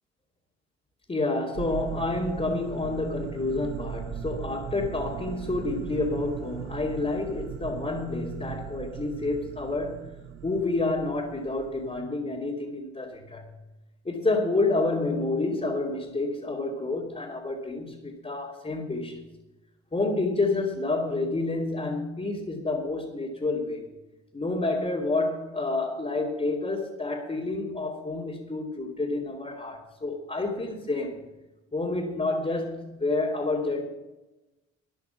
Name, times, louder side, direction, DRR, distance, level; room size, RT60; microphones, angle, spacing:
voice 1, 1.1-10.1 10.4-13.5 14.0-19.2 19.9-23.9 24.3-31.3 31.7-33.8, left 2 dB, 20° left, 2.9 m, -29 dB
sound 1, 1.5-12.0, right 9 dB, 60° right, 1.1 m, -39 dB
13.5 x 10.5 x 5.9 m
cardioid pair, 90°, 30 cm